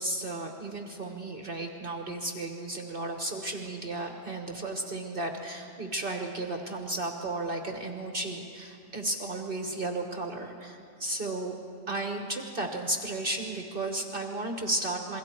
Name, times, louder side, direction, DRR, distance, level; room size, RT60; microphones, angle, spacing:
voice 1, 0.0-11.6 11.9-15.2, right 2 dB, 45° right, 3 dB, 1.4 m, -34 dB
27.5 x 22.0 x 4.5 m, 2.5 s
omnidirectional pair, 1.3 m